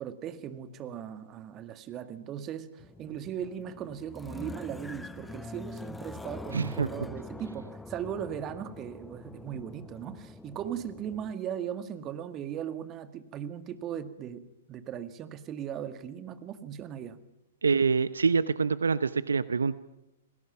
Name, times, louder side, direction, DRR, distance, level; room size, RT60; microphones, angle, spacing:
voice 1, 0.0-17.2, right 9 dB, 30° right, 10 dB, 1.9 m, -38 dB
sound 1, 2.8-11.3, left 2 dB, 5° left, 0.7 m, -44 dB
voice 2, 6.5-6.9 17.6-19.8, right 5 dB, 75° right, 16 dB, 0.8 m, -26 dB
30.0 x 21.0 x 5.8 m, 0.96 s
figure-of-eight pair, 110°, 0 cm